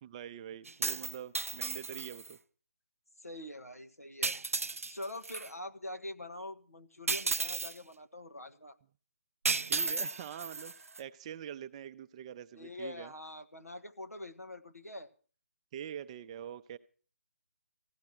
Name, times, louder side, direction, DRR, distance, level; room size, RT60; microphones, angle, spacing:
voice 1, 0.0-2.4 9.7-13.1 15.7-16.8, right 9 dB, 25° right, 12 dB, 0.6 m, -44 dB
sound 1, 0.7-2.3 4.2-5.5 7.1-7.8 9.5-11.0, right 4 dB, 70° right, 0.6 m, -34 dB
voice 2, 3.2-4.4 4.8-8.8 12.5-15.1, left 1 dB, 90° left, 6 dB, 1.5 m, -44 dB
15.5 x 10.5 x 6.1 m, 0.39 s
figure-of-eight pair, 145°, 8 cm